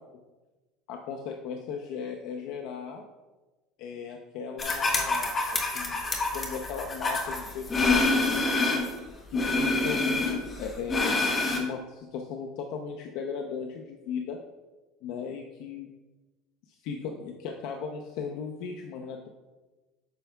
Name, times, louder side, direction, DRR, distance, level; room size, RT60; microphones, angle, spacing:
voice 1, 0.9-3.0 3.8-6.0 6.3-8.8 9.3-10.3 10.6-11.3 11.5-14.4 15.0-15.9 16.7-19.3, left 6 dB, 60° left, 2 dB, 0.6 m, -37 dB
sound 1, 4.6-8.9 9.3-11.6, left 2 dB, 20° left, 1.0 m, -27 dB
8.9 x 6.5 x 2.3 m, 1.2 s
cardioid pair, 170°, 0 cm